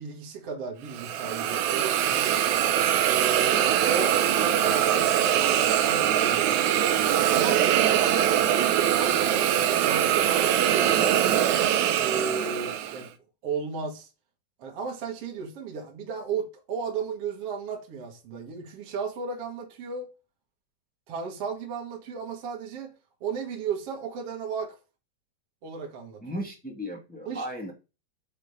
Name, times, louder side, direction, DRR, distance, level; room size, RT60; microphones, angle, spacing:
voice 1, 0.0-2.5 3.0-6.6 7.3-11.5 12.0-13.1 13.4-14.1 14.6-20.1 21.1-22.9 23.2-24.8 25.6-26.2 27.3-27.5, right 5 dB, 45° right, 2.4 m, -34 dB
Hiss, 0.9-13.0, right 10 dB, 85° right, 1.6 m, -23 dB
voice 2, 26.2-27.7, equal, 5° left, 0.8 m, -35 dB
7.0 x 6.6 x 4.0 m
omnidirectional pair, 4.3 m